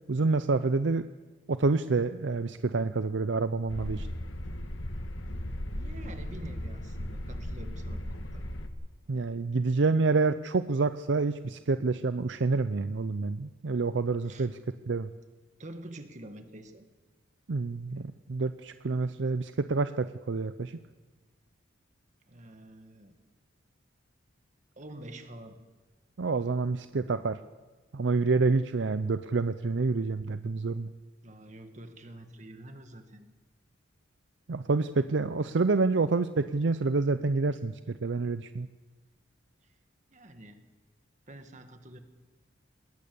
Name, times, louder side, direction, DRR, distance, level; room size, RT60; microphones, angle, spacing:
voice 1, 0.1-1.0 1.5-4.1 9.1-14.6 14.9-15.1 17.5-20.8 26.2-27.4 27.9-30.9 34.5-38.7, right 3 dB, 70° right, 11 dB, 0.6 m, -28 dB
sound 1, 3.7-8.7, left 1 dB, 85° left, 1.6 m, -37 dB
voice 2, 5.7-8.4 14.2-14.5 15.6-16.9 22.3-23.2 24.7-25.6 31.2-33.3 40.1-40.7 41.3-42.0, right 1 dB, 40° right, 7 dB, 1.8 m, -47 dB
20.5 x 19.0 x 7.0 m, 1.3 s
head